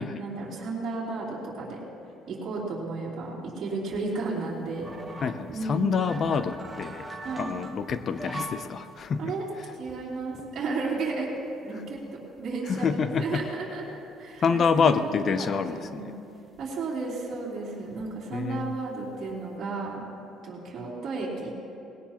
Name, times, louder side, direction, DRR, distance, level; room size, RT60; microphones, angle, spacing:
voice 1, 0.0-1.8 2.3-5.2 5.5-5.9 7.2-7.5 9.2-9.4 9.7-11.3 11.6-13.8 14.2-16.1 16.6-20.0 20.4-21.5, right 3 dB, 45° right, -7 dB, 3.1 m, -33 dB
sound 1, 3.9-8.6 9.0-9.1 9.6-11.0 11.4-11.5 11.9-12.0 12.3-13.8 14.3-14.4 14.6-15.1 15.7-15.9 16.5-16.6 17.0-18.1 18.4-18.7 19.0-19.5, right 2 dB, 10° right, 1.2 m, -42 dB
voice 2, 5.2-7.1 7.4-9.3 12.7-13.4 14.4-16.1 18.3-18.7, left 6 dB, 40° left, 11 dB, 0.5 m, -27 dB
19.5 x 17.0 x 3.0 m, 2.7 s
cardioid pair, 135°, 0 cm